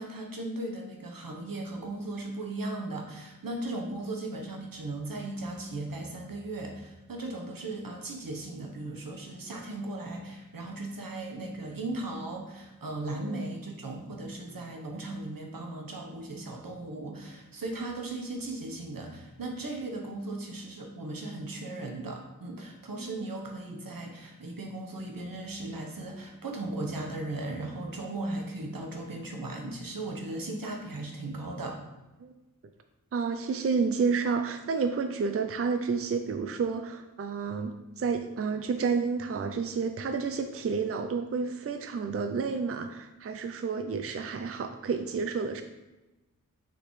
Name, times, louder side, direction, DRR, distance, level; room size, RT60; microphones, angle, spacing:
voice 1, 0.0-31.8, right 2 dB, 80° right, 2 dB, 1.1 m, -37 dB
voice 2, 33.1-45.6, right 5 dB, 45° right, 8 dB, 0.4 m, -30 dB
6.6 x 5.0 x 3.2 m, 1.1 s
wide cardioid pair, 70°, 34 cm